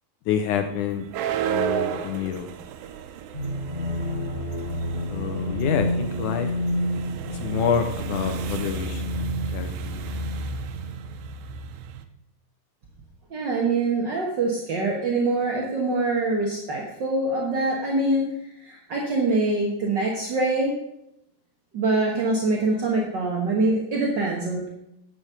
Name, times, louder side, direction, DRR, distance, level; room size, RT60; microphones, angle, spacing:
voice 1, 0.3-1.1 1.4-2.5 5.1-6.5 7.3-10.1, left 8 dB, 80° left, 7 dB, 2.0 m, -28 dB
sound 1, 0.5-12.0, right 7 dB, 90° right, 2.5 m, -33 dB
sound 2, 3.3-11.0, left 1 dB, 15° left, 2.0 m, -30 dB
voice 2, 13.3-18.3 18.6-20.7 21.7-24.7, right 2 dB, 55° right, -1 dB, 1.2 m, -24 dB
10.5 x 6.4 x 6.8 m, 0.81 s
omnidirectional pair, 4.1 m